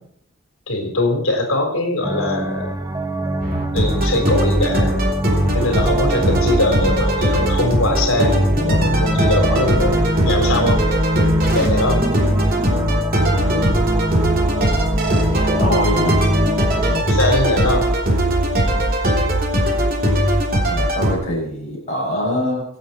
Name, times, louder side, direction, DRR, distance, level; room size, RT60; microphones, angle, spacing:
voice 1, 0.7-2.7 3.7-5.1 5.5-10.8 11.5-12.0 16.8-17.9, left 2 dB, 85° left, 1 dB, 4.1 m, -21 dB
sound 1, 2.0-17.0, right 1 dB, 15° right, 0.8 m, -24 dB
sound 2, 3.4-21.1, right 1 dB, 45° right, 3.3 m, -19 dB
voice 2, 15.3-16.2 20.6-22.6, left 1 dB, 35° left, -3 dB, 7.5 m, -24 dB
25.0 x 8.4 x 4.4 m, 0.68 s
head